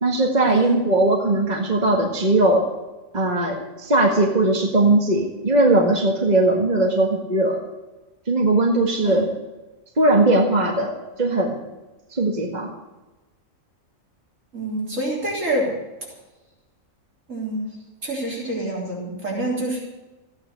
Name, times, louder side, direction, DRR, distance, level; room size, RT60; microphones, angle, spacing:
voice 1, 0.0-2.6 3.1-7.6 8.3-9.3 10.0-11.6 12.1-12.7, right 2 dB, 30° right, 0 dB, 1.8 m, -19 dB
voice 2, 14.5-15.7 17.3-17.7 18.0-19.8, right 1 dB, 70° right, -3 dB, 4.0 m, -26 dB
15.0 x 9.5 x 8.1 m, 1.1 s
omnidirectional pair, 1.4 m